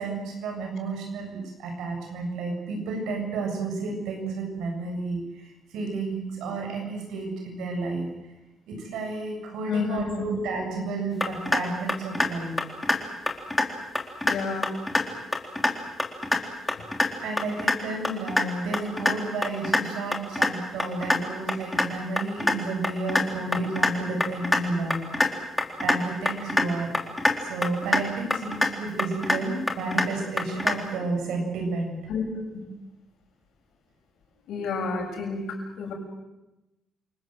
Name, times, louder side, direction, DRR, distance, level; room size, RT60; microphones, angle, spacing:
voice 1, 0.0-8.1 8.7-12.5 17.2-25.3 25.8-26.9 27.4-32.0, right 3 dB, 85° right, 3 dB, 7.9 m, -31 dB
voice 2, 9.7-10.3 14.2-14.7 32.1-32.6 34.5-35.4 35.8-35.9, left 4 dB, 80° left, 1 dB, 7.1 m, -30 dB
sound 1, 11.2-11.6 11.9-12.3 12.6-13.0 13.3-13.6 13.9-14.3 14.6-15.0 15.3-15.7 16.0-16.4 16.7-17.1 17.4-17.7 18.0-18.4 18.7-19.1 19.4-19.8 20.1-20.5 20.8-21.2 21.5-21.9 22.2-22.5 22.8-23.2 23.5-23.9 24.2-24.6 24.9-25.3 25.6-26.0 26.2-26.7 26.9-27.3 27.6-28.0 28.3-28.7 29.0-29.4 29.7-30.1 30.4-30.7, left 2 dB, 15° left, 3.7 m, -23 dB
28.5 x 19.5 x 7.9 m, 0.99 s
cardioid pair, 90°, 0 cm